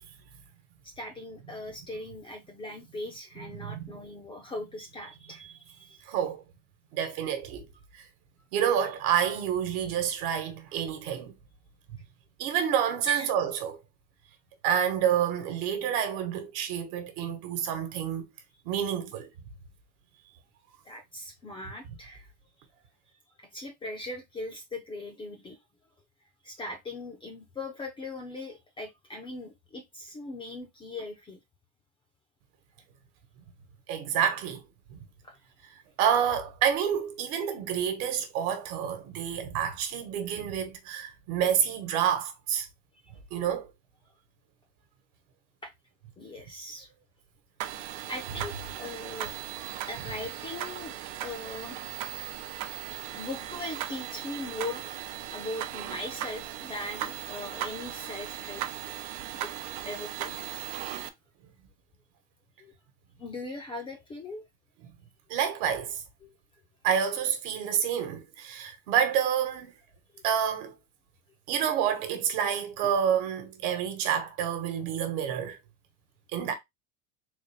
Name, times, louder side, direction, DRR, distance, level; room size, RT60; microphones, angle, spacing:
voice 1, 0.8-6.0 13.1-13.3 20.8-22.3 23.5-25.6 26.4-31.4 35.2-35.4 45.6-45.7 46.2-46.9 48.1-49.3 49.9-51.8 53.1-58.7 59.3-59.5 59.8-60.5 62.6-62.7 63.2-64.5 66.2-66.3 70.1-70.2 72.8-72.9, left 2 dB, 15° left, 0.4 m, -40 dB
voice 2, 6.1-6.4 6.9-7.7 7.9-8.0 8.5-11.3 12.4-13.8 14.6-18.3 18.6-19.3 33.9-34.6 34.9-35.0 36.0-42.7 43.3-43.7 49.6-49.7 65.3-66.0 66.8-69.8 70.2-70.7 71.5-75.6 76.3-76.5, right 9 dB, 60° right, 1.2 m, -28 dB
sound 1, 47.6-61.1, right 12 dB, 80° right, 0.7 m, -38 dB
3.9 x 2.5 x 3.4 m
cardioid pair, 160°, 36 cm